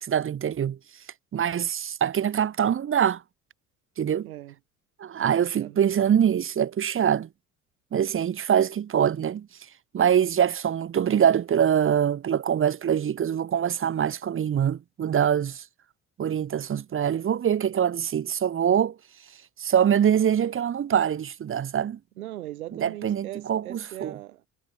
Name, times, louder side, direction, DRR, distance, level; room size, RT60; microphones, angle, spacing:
voice 1, 0.0-0.8 1.3-3.2 4.0-4.3 5.0-7.3 7.9-9.5 9.9-15.6 16.2-19.0 19.6-22.0 22.7-24.2, right 9 dB, 30° right, 1.1 m, -24 dB
voice 2, 4.2-4.6 5.2-5.8 22.2-24.5, right 14 dB, 75° right, 2.4 m, -39 dB
figure-of-eight pair, 60°, 44 cm